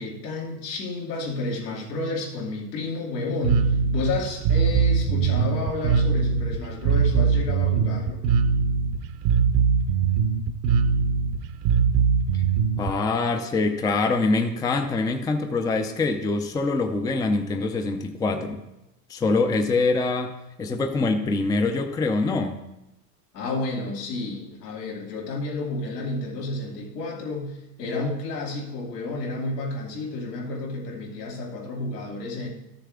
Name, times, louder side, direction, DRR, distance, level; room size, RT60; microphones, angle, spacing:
voice 1, 0.0-8.2 23.3-32.5, left 2 dB, 85° left, -2 dB, 2.7 m, -31 dB
Bass guitar, 3.4-12.9, right 6 dB, 50° right, 0.8 m, -21 dB
voice 2, 12.8-18.6 19.1-22.6, left 3 dB, 10° left, 6 dB, 0.5 m, -24 dB
12.5 x 6.9 x 3.6 m, 0.93 s
hypercardioid pair, 115°, 48 cm